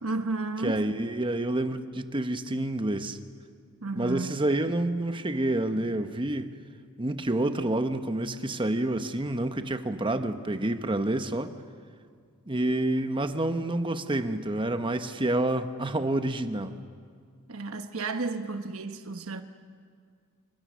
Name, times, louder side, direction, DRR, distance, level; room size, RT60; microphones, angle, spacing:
voice 1, 0.0-0.8 3.8-4.3 17.5-19.4, right 3 dB, 75° right, 1.1 m, -32 dB
voice 2, 0.6-3.2 4.0-6.5 7.0-11.5 12.5-16.7, right 1 dB, 25° right, 1.0 m, -28 dB
27.5 x 26.5 x 6.3 m
head